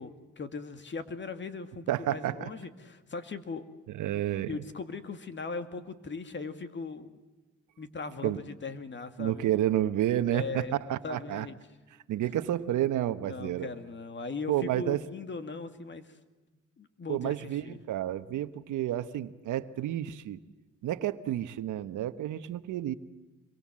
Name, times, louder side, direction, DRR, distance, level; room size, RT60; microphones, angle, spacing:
voice 1, 0.0-3.7 4.5-7.2 7.8-9.4 10.3-11.6 13.3-16.2 16.8-17.8, left 4 dB, 40° left, 9 dB, 2.3 m, -39 dB
voice 2, 1.9-2.5 3.9-4.6 8.2-8.4 9.2-11.5 12.1-13.7 14.5-15.0 17.1-20.4 20.8-22.9, right 12 dB, 80° right, 12 dB, 1.2 m, -30 dB
27.0 x 23.0 x 7.6 m, 1.2 s
cardioid pair, 90°, 30 cm